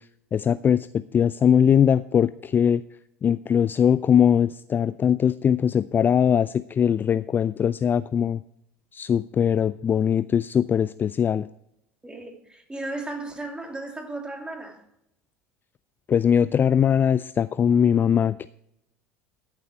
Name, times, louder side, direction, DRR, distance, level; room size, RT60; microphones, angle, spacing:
voice 1, 0.3-0.9 1.1-2.8 3.2-8.4 8.9-11.5 16.1-18.5, left 8 dB, 25° left, 0.3 m, -21 dB
voice 2, 12.0-14.8, right 2 dB, 10° right, 2.6 m, -35 dB
14.0 x 7.5 x 4.5 m
figure-of-eight pair, 70°, 8 cm